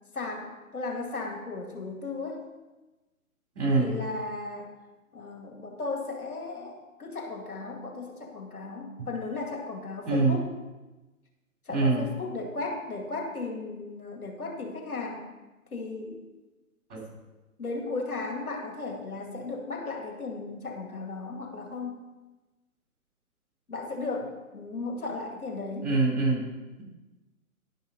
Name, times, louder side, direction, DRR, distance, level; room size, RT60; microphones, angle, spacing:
voice 1, 0.1-2.4 3.8-4.7 5.1-10.5 11.7-15.3 15.7-16.2 17.6-21.9 23.7-25.9, left 3 dB, 80° left, 1 dB, 2.3 m, -35 dB
voice 2, 3.5-3.9 10.0-10.4 11.7-12.1 16.9-17.0 25.8-26.4, right 3 dB, 50° right, -1 dB, 3.5 m, -24 dB
11.0 x 5.6 x 5.4 m, 1.1 s
figure-of-eight pair, 135°, 43 cm